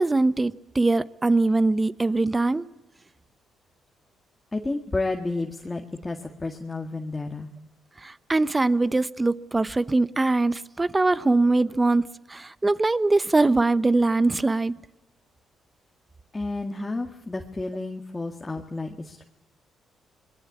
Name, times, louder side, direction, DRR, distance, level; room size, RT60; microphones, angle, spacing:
voice 1, 0.0-2.6 8.0-14.7, right 2 dB, 20° right, 1.0 m, -22 dB
voice 2, 4.5-7.5 16.3-19.2, left 2 dB, 20° left, 2.0 m, -31 dB
25.5 x 21.0 x 8.5 m
cardioid pair, 90°, 0 cm